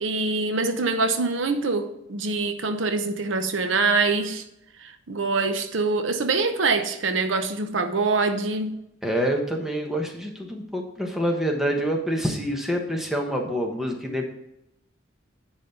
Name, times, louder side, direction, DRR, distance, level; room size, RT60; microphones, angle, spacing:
voice 1, 0.0-4.4 4.8-8.8, right 3 dB, 85° right, 0.8 m, -24 dB
voice 2, 9.0-14.3, equal, ahead, 1.2 m, -26 dB
10.0 x 4.1 x 5.7 m
head